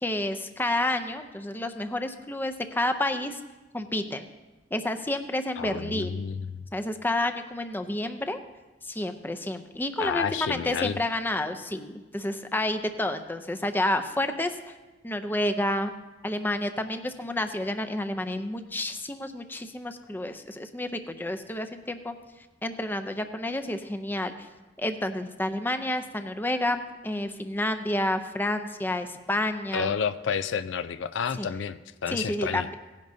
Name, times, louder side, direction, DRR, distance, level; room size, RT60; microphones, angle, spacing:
voice 1, 0.0-3.4 3.7-4.3 4.7-6.1 6.7-8.4 8.8-14.6 15.0-15.9 16.2-22.2 22.6-24.5 24.8-29.9 31.4-31.5 32.1-32.7, left 1 dB, 10° left, 7 dB, 0.5 m, -30 dB
voice 2, 5.6-6.6 10.0-11.0 29.7-32.7, left 6 dB, 85° left, 12 dB, 0.4 m, -30 dB
17.5 x 10.5 x 2.7 m, 1.1 s
head